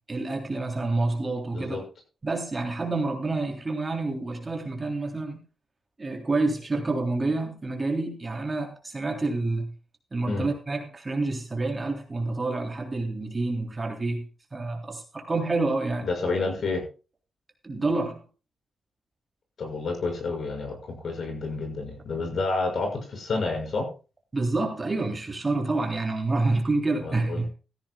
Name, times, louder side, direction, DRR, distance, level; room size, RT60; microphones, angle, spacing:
voice 1, 0.1-1.8 2.2-5.4 6.0-9.7 10.1-14.2 14.5-16.1 17.6-18.2 24.3-27.5, right 2 dB, 25° right, 3 dB, 3.3 m, -28 dB
voice 2, 16.0-16.8 19.6-23.9 27.0-27.5, left 3 dB, 55° left, 5 dB, 6.3 m, -29 dB
16.0 x 15.0 x 2.4 m, 0.33 s
wide cardioid pair, 155°, 0 cm